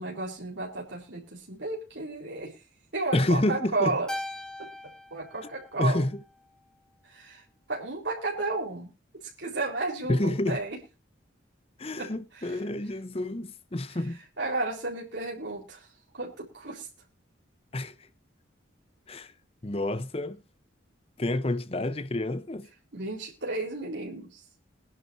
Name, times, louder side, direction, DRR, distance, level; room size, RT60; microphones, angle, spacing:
voice 1, 0.0-2.5 2.9-4.1 4.6-4.7 5.1-6.0 7.0-7.4 7.7-8.9 9.4-10.8 12.0-12.6 14.4-15.9 16.1-16.9 22.9-24.4, right 2 dB, 65° right, 4.1 m, -33 dB
voice 2, 3.1-4.0 5.8-6.1 10.1-10.6 11.8-14.2 17.7-17.9 19.1-19.3 19.6-20.4 21.2-22.7, left 1 dB, 30° left, 0.7 m, -28 dB
Keyboard (musical), 4.1-6.6, left 1 dB, 5° left, 1.0 m, -40 dB
22.5 x 11.0 x 2.7 m
head